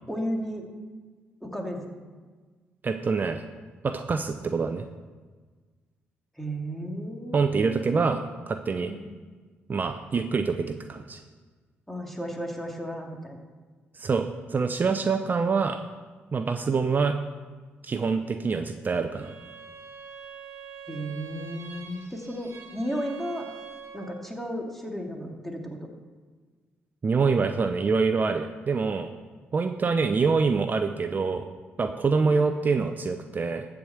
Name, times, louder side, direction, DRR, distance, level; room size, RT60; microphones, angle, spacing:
voice 1, 0.1-0.7 1.4-1.9 6.4-8.1 8.8-9.0 11.9-13.4 20.9-23.5 23.9-25.9, equal, 5° left, 1 dB, 2.3 m, -34 dB
voice 2, 2.8-3.4 3.8-4.9 7.3-8.2 8.5-8.9 9.7-11.2 13.9-15.8 16.3-17.2 17.8-19.3 27.0-29.1 29.5-31.5 31.8-33.7, right 4 dB, 40° right, 8 dB, 0.7 m, -25 dB
Bowed string instrument, 19.1-24.3, right 6 dB, 65° right, 1.3 m, -44 dB
13.0 x 5.0 x 7.9 m, 1.4 s
supercardioid pair, 65°, 5 cm